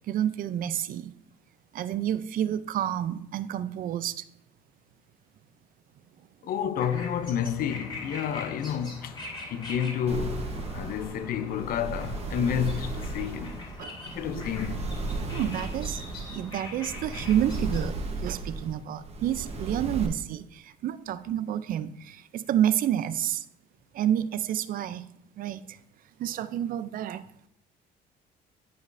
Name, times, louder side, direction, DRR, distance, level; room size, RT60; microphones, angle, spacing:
voice 1, 0.1-1.1 1.7-4.2 13.8-13.9 14.3-14.4 15.3-16.0 16.3-18.0 18.2-23.4 23.9-25.1 25.4-25.6 26.2-27.3, right 10 dB, 55° right, 0.4 m, -29 dB
voice 2, 6.4-9.2 9.5-13.6 14.1-14.9, left 8 dB, 60° left, 0.5 m, -30 dB
sound 1, 6.8-17.8, left 2 dB, 25° left, 2.0 m, -42 dB
sound 2, 10.1-20.1, right 3 dB, 40° right, 1.0 m, -35 dB
11.0 x 5.2 x 2.6 m
cardioid pair, 110°, 17 cm